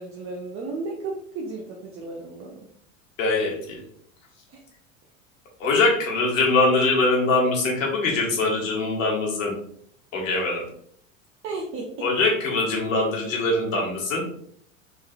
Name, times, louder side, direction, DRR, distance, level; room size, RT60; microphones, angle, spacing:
voice 1, 0.0-2.6 4.5-4.6 11.4-12.1, right 3 dB, 30° right, 0 dB, 0.6 m, -34 dB
voice 2, 3.2-3.8 5.6-9.5 10.1-10.6 12.0-14.2, left 3 dB, 70° left, -1 dB, 1.3 m, -22 dB
3.8 x 3.1 x 2.5 m, 0.64 s
figure-of-eight pair, 80°, 40 cm